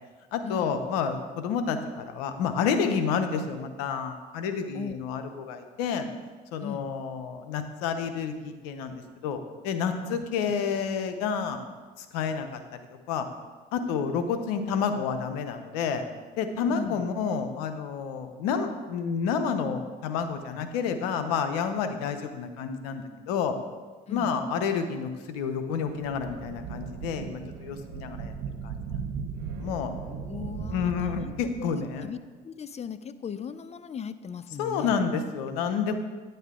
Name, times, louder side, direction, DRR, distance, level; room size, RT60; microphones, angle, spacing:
voice 1, 0.3-6.1 6.5-11.6 12.0-12.6 13.1-13.3 13.7-16.0 16.4-23.6 24.1-28.3 28.6-28.8 29.6-29.9 30.7-32.1 34.6-35.9, left 6 dB, 90° left, 8 dB, 0.8 m, -29 dB
voice 2, 16.7-17.0 24.1-24.3 30.1-31.3 32.0-32.2 32.4-34.9, left 7 dB, 35° left, 14 dB, 0.6 m, -38 dB
sound 1, 25.8-32.0, right 6 dB, 70° right, 0.9 m, -37 dB
10.0 x 7.9 x 3.7 m, 1.4 s
supercardioid pair, 70°, 20 cm